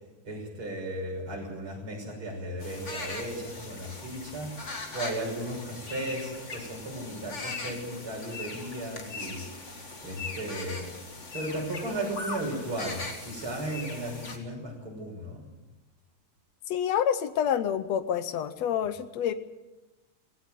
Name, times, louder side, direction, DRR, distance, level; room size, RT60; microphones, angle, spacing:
voice 1, 0.2-10.9 11.3-15.4, right 1 dB, 40° right, -1 dB, 7.0 m, -36 dB
sound 1, 2.6-14.4, left 3 dB, 25° left, 1.9 m, -40 dB
voice 2, 16.7-19.3, left 9 dB, 70° left, 12 dB, 1.7 m, -28 dB
18.0 x 17.0 x 9.2 m, 1.0 s
omnidirectional pair, 3.8 m